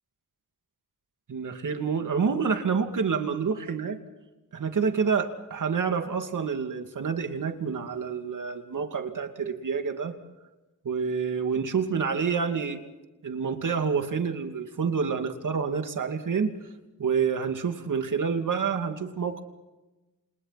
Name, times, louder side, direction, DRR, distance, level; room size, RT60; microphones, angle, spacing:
voice 1, 1.3-4.0 4.5-10.2 10.8-12.8 13.2-16.5 17.0-19.4, right 6 dB, 70° right, 6 dB, 2.6 m, -28 dB
29.5 x 28.0 x 4.2 m, 1.1 s
cardioid pair, 70°, 32 cm